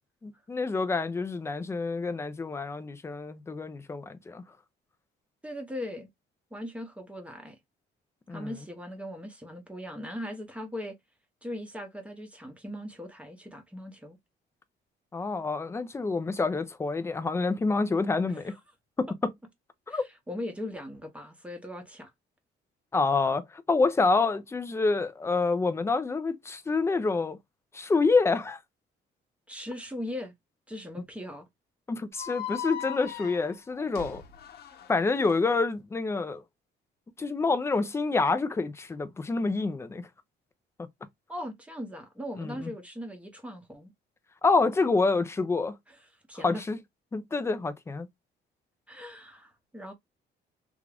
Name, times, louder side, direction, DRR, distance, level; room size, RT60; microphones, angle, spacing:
voice 1, 0.2-4.4 8.3-8.5 15.1-18.5 19.0-19.1 19.9-20.0 22.9-27.4 27.7-28.6 31.9-34.2 34.9-36.4 37.2-40.1 42.4-42.7 44.4-45.7 46.4-46.8 47.1-48.1, left 3 dB, 15° left, 0.5 m, -27 dB
voice 2, 5.4-6.1 6.5-7.6 8.3-11.0 11.4-14.2 18.3-18.5 19.9-22.1 29.5-30.3 30.7-31.5 41.3-43.9 45.9-46.0 46.3-46.6 48.9-49.9, left 1 dB, 5° right, 0.8 m, -39 dB
sound 1, 32.2-35.3, left 10 dB, 60° left, 0.9 m, -39 dB
3.5 x 2.5 x 3.3 m
cardioid pair, 155°, 19 cm